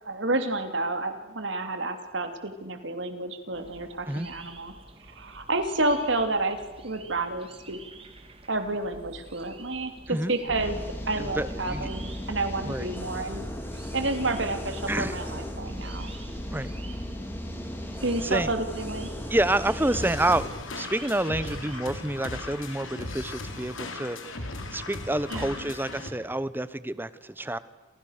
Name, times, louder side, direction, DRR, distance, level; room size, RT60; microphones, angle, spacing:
voice 1, 0.0-4.7 5.0-6.6 6.8-7.8 8.5-10.8 11.0-13.5 13.9-16.1 18.0-19.1 25.3-25.7, right 2 dB, 70° right, 7 dB, 3.0 m, -30 dB
sound 1, 3.5-21.8, right 3 dB, 30° right, 2.5 m, -49 dB
sound 2, 10.5-20.5, equal, 10° left, 3.5 m, -36 dB
voice 2, 11.2-11.9 12.7-12.9 14.9-15.2 16.5-16.7 18.2-18.5 19.3-20.4 20.7-24.2 24.7-27.6, right 1 dB, 10° right, 16 dB, 0.8 m, -28 dB
sound 3, 19.9-26.1, left 2 dB, 85° left, 3.8 m, -37 dB
29.0 x 28.0 x 6.7 m, 1.2 s
head